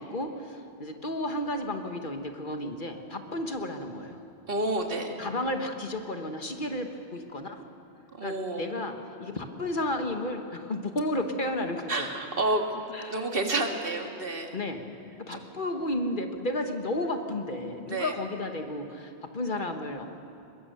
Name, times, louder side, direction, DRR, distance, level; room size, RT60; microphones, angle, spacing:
voice 1, 0.0-4.2 5.2-7.6 8.2-8.9 9.2-12.1 12.9-13.2 14.5-14.9 15.2-20.1, left 1 dB, 50° left, 5 dB, 1.5 m, -32 dB
voice 2, 4.5-5.2 8.2-8.6 11.9-12.7 13.1-14.6 15.3-15.4 17.9-18.1, right 2 dB, 55° right, 3 dB, 2.0 m, -29 dB
22.0 x 21.5 x 6.8 m, 2.6 s
omnidirectional pair, 1.1 m